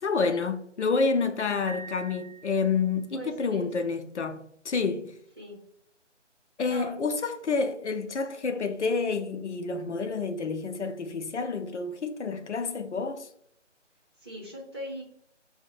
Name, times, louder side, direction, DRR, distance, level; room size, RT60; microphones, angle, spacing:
voice 1, 0.0-5.2 6.6-13.3, left 4 dB, 70° left, 0.5 m, -29 dB
Piano, 1.7-3.1, right 4 dB, 75° right, 0.6 m, -45 dB
voice 2, 3.1-3.7 5.4-5.6 6.7-7.0 14.2-15.0, right 1 dB, 20° right, 0.9 m, -39 dB
5.4 x 2.1 x 2.4 m
figure-of-eight pair, 160°, 37 cm